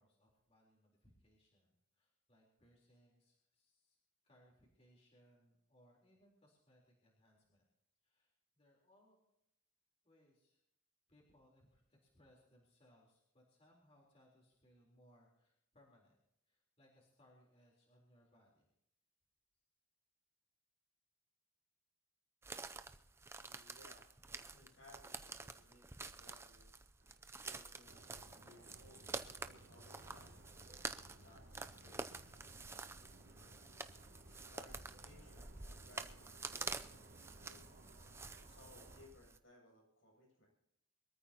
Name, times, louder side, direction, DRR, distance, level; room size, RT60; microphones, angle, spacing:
voice 1, 0.0-4.0 4.2-7.6 8.0-9.2 10.0-10.6 11.1-16.2 16.5-18.7, equal, 30° left, -3 dB, 3.9 m, -70 dB
sound 1, 22.4-39.4, right 3 dB, 10° right, 0.5 m, -49 dB
voice 2, 23.4-26.7 27.4-30.4 31.0-32.1 34.2-37.7 38.4-40.5, left 2 dB, 70° left, -2 dB, 7.7 m, -64 dB
sound 2, 27.0-28.1 29.7-32.6, right 2 dB, 50° right, 3.0 m, -71 dB
sound 3, 27.9-39.1, right 1 dB, 70° right, 2.5 m, -60 dB
25.0 x 14.0 x 2.9 m, 0.76 s
head